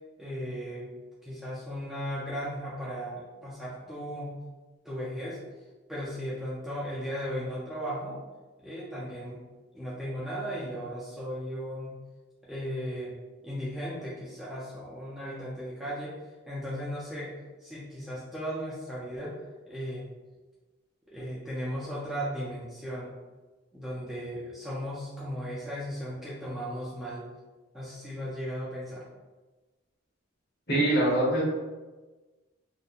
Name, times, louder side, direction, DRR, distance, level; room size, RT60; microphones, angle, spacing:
voice 1, 0.2-0.9 1.2-4.4 4.8-5.4 5.9-8.2 8.6-9.4 9.7-12.0 12.4-13.1 13.4-16.2 16.5-19.3 19.7-20.1 21.1-23.1 23.7-27.2 27.7-29.1, equal, ahead, -9 dB, 0.3 m, -36 dB
voice 2, 30.7-31.4, right 1 dB, 50° left, -6 dB, 0.9 m, -23 dB
2.8 x 2.1 x 2.3 m, 1.2 s
head